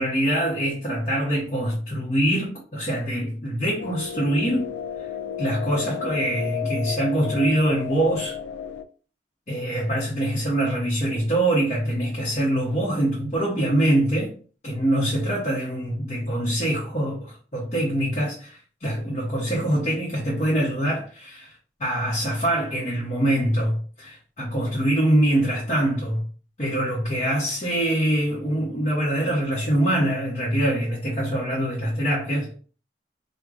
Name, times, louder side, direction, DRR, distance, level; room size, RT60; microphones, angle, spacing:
voice 1, 0.0-4.7 5.4-8.4 9.5-14.3 14.6-26.3 26.6-32.5, right 1 dB, 35° left, 0.8 m, -24 dB
sound 1, 3.8-8.8, left 9 dB, 75° left, 0.3 m, -32 dB
4.7 x 2.1 x 2.5 m
head